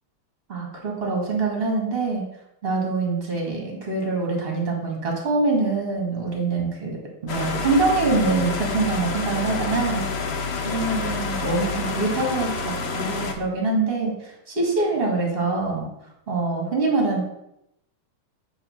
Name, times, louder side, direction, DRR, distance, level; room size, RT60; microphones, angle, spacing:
voice 1, 0.5-2.2 2.6-7.0 7.2-10.1 10.6-15.9 16.3-17.2, right 3 dB, 30° right, -1 dB, 1.9 m, -24 dB
sound 1, 7.3-13.3, left 4 dB, 80° left, 0.5 m, -28 dB
6.5 x 3.9 x 6.3 m, 0.82 s
omnidirectional pair, 2.3 m